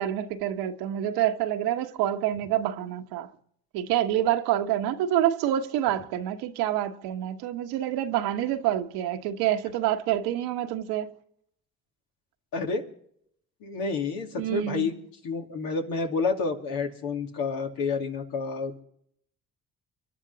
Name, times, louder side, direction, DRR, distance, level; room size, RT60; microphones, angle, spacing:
voice 1, 0.0-3.3 3.7-11.1 14.4-15.0, right 11 dB, 85° right, 1.2 m, -27 dB
voice 2, 12.5-12.8 13.6-14.9 15.2-18.8, left 4 dB, 75° left, 2.7 m, -29 dB
25.5 x 11.5 x 4.0 m
supercardioid pair, 65°, 36 cm